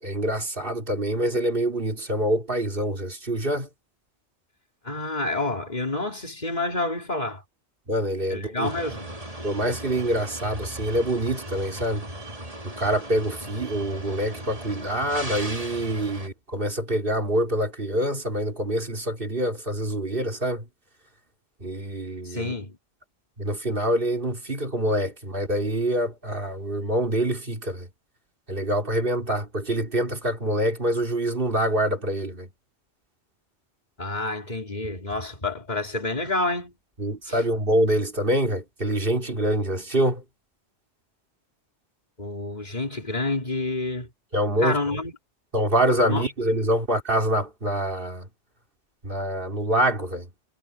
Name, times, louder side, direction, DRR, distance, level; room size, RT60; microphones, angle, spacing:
voice 1, 0.0-3.7 7.9-8.7 9.4-12.1 12.6-20.7 21.6-22.6 23.4-27.9 28.5-32.5 37.0-40.2 44.3-44.8 45.5-48.3 49.0-50.3, right 1 dB, 50° right, 3.7 m, -25 dB
voice 2, 4.8-7.4 8.3-9.1 22.2-22.8 34.0-36.7 37.3-37.4 42.2-44.1 44.6-45.1 46.1-46.3, left 2 dB, 40° left, 3.8 m, -28 dB
sound 1, 8.6-16.3, right 1 dB, 30° right, 2.9 m, -37 dB
omnidirectional pair, 1.1 m